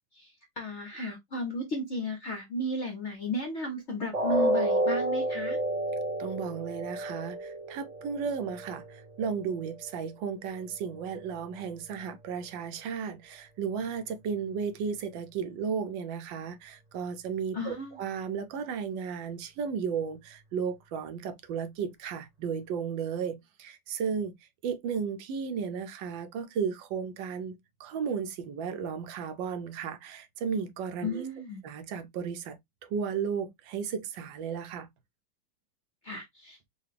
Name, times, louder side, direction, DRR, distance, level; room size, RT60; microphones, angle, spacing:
voice 1, 0.1-5.6 17.5-18.0 31.0-31.6 36.0-36.6, left 1 dB, 65° left, 0.7 m, -34 dB
sound 1, 4.1-10.1 10.5-10.7 11.2-11.3, right 1 dB, 35° right, 0.7 m, -31 dB
voice 2, 6.2-24.3 24.6-27.5 27.8-31.2 31.6-32.6 32.8-34.9, right 6 dB, 80° right, 1.3 m, -34 dB
3.8 x 2.4 x 3.2 m
omnidirectional pair, 2.1 m